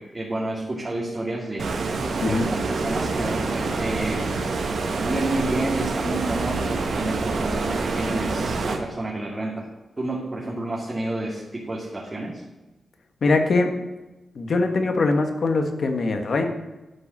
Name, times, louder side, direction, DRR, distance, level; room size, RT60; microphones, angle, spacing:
voice 1, 0.0-9.7 10.0-12.4, right 2 dB, 25° right, -4 dB, 2.3 m, -30 dB
Stream, 1.6-8.8, right 3 dB, 70° right, 1.6 m, -26 dB
voice 2, 2.2-2.5 13.2-13.7 14.3-16.5, left 3 dB, 55° left, 5 dB, 1.6 m, -22 dB
11.5 x 5.5 x 7.4 m, 1.1 s
wide cardioid pair, 115°, 0 cm